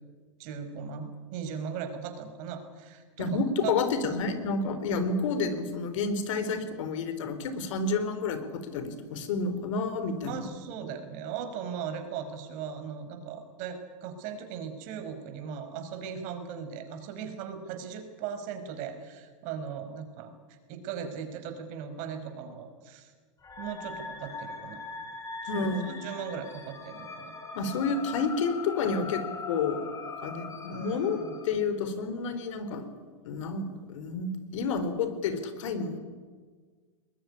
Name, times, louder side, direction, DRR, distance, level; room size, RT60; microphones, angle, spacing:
voice 1, 0.4-3.8 10.2-23.1 23.6-24.8 25.4-27.8 30.7-31.4, right 7 dB, 50° right, 7 dB, 5.3 m, -38 dB
voice 2, 3.2-10.5 25.5-26.1 27.5-29.9 30.2-31.2 31.4-32.8 33.2-36.0, left 4 dB, 70° left, 10 dB, 4.1 m, -30 dB
sound 1, 23.4-31.6, left 4 dB, 20° left, 4.5 m, -41 dB
22.5 x 21.0 x 9.9 m, 1.5 s
hypercardioid pair, 115°, 17 cm